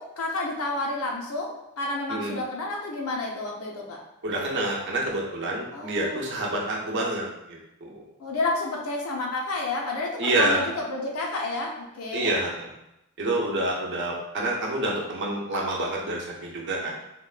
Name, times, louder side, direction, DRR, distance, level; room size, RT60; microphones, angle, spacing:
voice 1, 0.0-4.0 5.7-6.2 8.2-12.3, left 2 dB, 85° left, 0 dB, 0.6 m, -30 dB
voice 2, 4.2-8.1 10.2-10.7 12.1-12.7 13.2-16.9, right 1 dB, 55° right, -2 dB, 0.6 m, -28 dB
3.5 x 2.2 x 2.4 m, 0.88 s
head